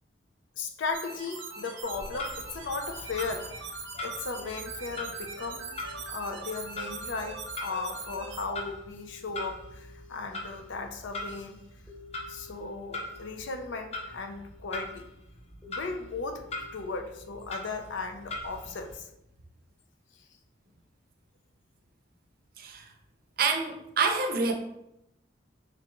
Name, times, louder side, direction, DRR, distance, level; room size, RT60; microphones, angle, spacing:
voice 1, 0.6-3.7 4.0-5.7 6.1-11.6 12.3-15.1 15.7-16.4 16.7-19.1, left 4 dB, 80° left, 5 dB, 0.5 m, -36 dB
sound 1, 0.9-8.4, right 4 dB, 85° right, 0.7 m, -41 dB
Clock, 1.8-19.0, left 2 dB, 35° left, 0.6 m, -42 dB
sound 2, 3.8-19.2, left 4 dB, ahead, 0.8 m, -54 dB
voice 2, 22.6-22.9 23.4-24.5, right 4 dB, 55° right, 4 dB, 0.5 m, -27 dB
3.7 x 3.3 x 2.9 m, 0.82 s
head